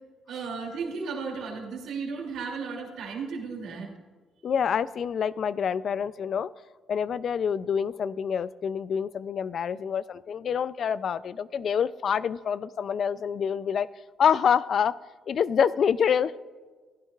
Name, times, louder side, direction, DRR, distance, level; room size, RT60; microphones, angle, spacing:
voice 1, 0.3-3.9, right 5 dB, 80° right, 1 dB, 2.7 m, -34 dB
voice 2, 4.4-6.5 6.9-13.9 14.2-14.9 15.3-16.3, left 7 dB, 60° left, 17 dB, 0.4 m, -26 dB
15.5 x 11.0 x 2.4 m, 1.4 s
cardioid pair, 90°, 0 cm